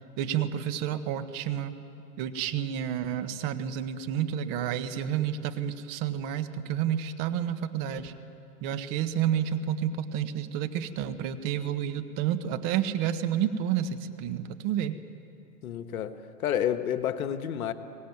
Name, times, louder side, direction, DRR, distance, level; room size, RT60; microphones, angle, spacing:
voice 1, 0.2-1.8 2.2-8.1 8.6-14.9, right 10 dB, 35° right, 1.4 m, -30 dB
voice 2, 15.6-17.7, left 9 dB, 60° left, 1.5 m, -30 dB
23.5 x 18.5 x 9.5 m
hypercardioid pair, 120°, 48 cm